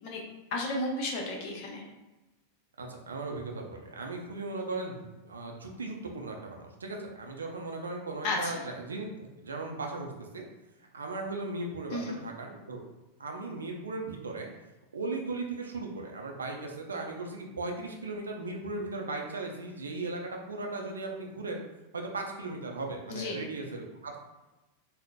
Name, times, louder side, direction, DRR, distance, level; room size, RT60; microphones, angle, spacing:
voice 1, 0.5-1.8 8.2-8.6 11.9-12.2 23.1-23.4, left 2 dB, 45° left, 0 dB, 0.7 m, -33 dB
voice 2, 2.8-9.1 9.4-10.5 10.9-12.8 13.2-14.5 14.9-21.6 21.9-24.2, right 3 dB, 70° right, 1 dB, 0.5 m, -37 dB
4.0 x 2.0 x 2.2 m, 1.0 s
figure-of-eight pair, 90°, 0 cm